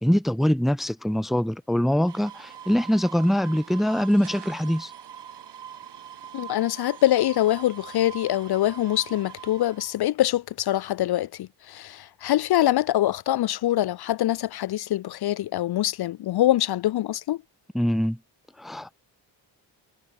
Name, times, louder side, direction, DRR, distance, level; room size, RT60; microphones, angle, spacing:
voice 1, 0.0-4.9 17.7-18.2 18.6-18.9, equal, ahead, 0.6 m, -23 dB
sound 1, 2.1-10.0, right 9 dB, 60° right, 2.9 m, -43 dB
voice 2, 6.3-17.4, left 13 dB, 55° left, 0.6 m, -24 dB
cardioid pair, 75°, 45 cm